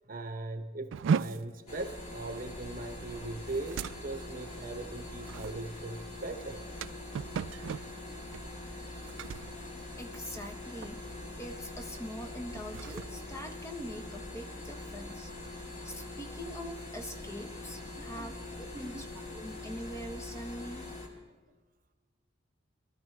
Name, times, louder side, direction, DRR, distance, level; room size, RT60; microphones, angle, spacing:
voice 1, 0.1-6.6 17.9-18.3 18.8-19.0, right 2 dB, 45° right, 7 dB, 0.9 m, -40 dB
sound 1, 0.9-10.5 10.8-11.2 11.6-11.8 12.4-14.3, right 6 dB, 75° right, 0.3 m, -37 dB
sound 2, 1.7-21.1, left 2 dB, 35° left, 2.0 m, -43 dB
voice 2, 10.0-15.3 15.8-20.9, equal, 15° left, 4 dB, 0.9 m, -43 dB
22.5 x 13.0 x 3.2 m, 1.3 s
head